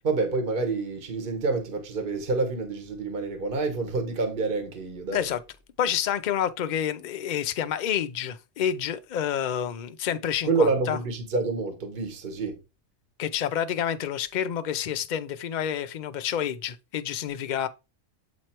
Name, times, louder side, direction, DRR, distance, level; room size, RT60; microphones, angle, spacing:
voice 1, 0.0-5.3 10.4-12.6, right 3 dB, 45° right, 1.2 m, -27 dB
voice 2, 5.8-11.0 13.2-17.7, left 9 dB, 65° left, 0.4 m, -28 dB
7.9 x 3.1 x 4.4 m
omnidirectional pair, 1.4 m